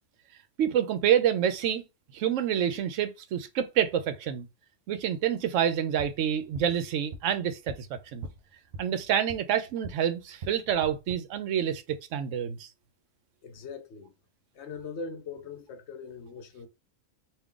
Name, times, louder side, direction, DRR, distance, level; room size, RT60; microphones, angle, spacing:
voice 1, 0.6-1.8 2.1-4.5 4.9-8.3 8.8-12.7, right 9 dB, 75° right, 0.9 m, -27 dB
sound 1, 6.0-10.0 10.3-11.2, right 2 dB, 60° right, 0.8 m, -44 dB
voice 2, 13.4-14.1 14.6-16.7, left 4 dB, 65° left, 0.9 m, -41 dB
3.5 x 2.5 x 3.7 m
omnidirectional pair, 1.3 m